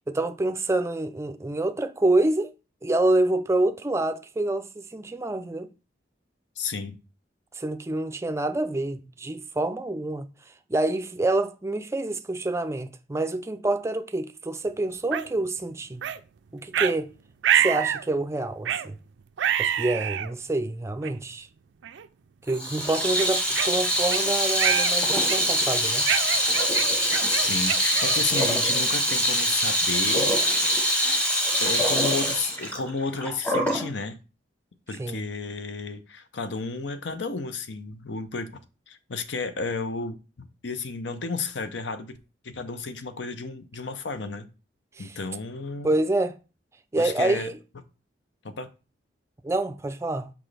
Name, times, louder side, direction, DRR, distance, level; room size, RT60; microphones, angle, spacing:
voice 1, 0.1-2.5 2.8-5.7 7.5-10.3 10.7-16.0 16.5-17.1 17.5-19.0 19.6-21.5 22.5-26.1 35.0-35.2 45.0-45.2 45.8-46.4 46.9-47.5 49.4-50.3, right 2 dB, 15° right, 0.4 m, -27 dB
voice 2, 6.6-7.0 27.3-30.3 31.6-34.2 34.9-38.5 38.9-42.2 42.4-44.5 45.0-45.9 47.0-47.5 48.6-48.7, left 4 dB, 75° left, 0.7 m, -32 dB
sound 1, 15.1-15.3 16.0-16.2 16.7-16.9 17.4-18.1 18.7-18.9 19.4-20.3 21.0-21.1 21.8-22.1 22.5-22.6 23.2-24.2 24.6-25.0 25.3-25.6 26.1-28.6, right 9 dB, 80° right, 0.4 m, -26 dB
Water tap faucet / Sink (filling or washing), 22.5-33.9, equal, 5° left, 0.9 m, -24 dB
6.0 x 4.9 x 3.3 m
head